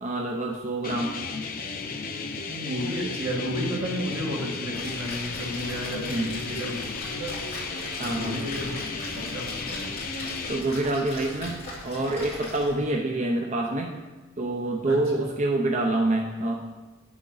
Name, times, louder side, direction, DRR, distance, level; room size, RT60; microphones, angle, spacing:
voice 1, 0.0-1.1 6.1-6.4 8.0-8.5 10.5-13.9 14.4-16.6, right 2 dB, 35° right, 1 dB, 0.6 m, -27 dB
sound 1, 0.8-10.6, left 4 dB, 45° left, 0.6 m, -34 dB
voice 2, 2.5-7.4 7.7-8.8 9.2-9.8 14.9-15.0, equal, 80° right, -2 dB, 1.9 m, -32 dB
Splash splatter, 4.7-12.9, left 1 dB, 30° left, 2.4 m, -39 dB
8.0 x 6.4 x 3.9 m, 1.2 s
head